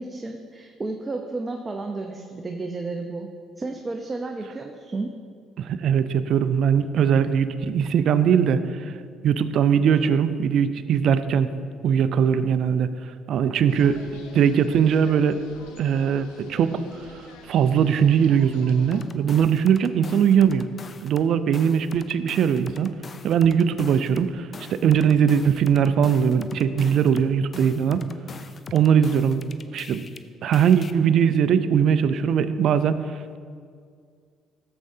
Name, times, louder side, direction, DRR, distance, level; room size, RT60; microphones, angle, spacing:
voice 1, 0.0-3.3 3.6-5.1, right 3 dB, 25° right, 2 dB, 0.7 m, -32 dB
voice 2, 5.6-8.9 9.2-11.5 11.8-12.9 13.3-15.4 15.8-16.8 17.1-20.7 21.0-22.9 23.2-28.0 28.7-29.4 29.7-30.0 30.4-33.0, right 8 dB, 65° right, 11 dB, 0.4 m, -20 dB
sound 1, 13.7-19.0, left 4 dB, 85° left, 0.8 m, -47 dB
sound 2, 18.9-21.3 21.5-30.2 30.5-30.9, left 4 dB, 40° left, 0.5 m, -42 dB
13.0 x 7.7 x 2.7 m, 2.1 s
supercardioid pair, 70°, 0 cm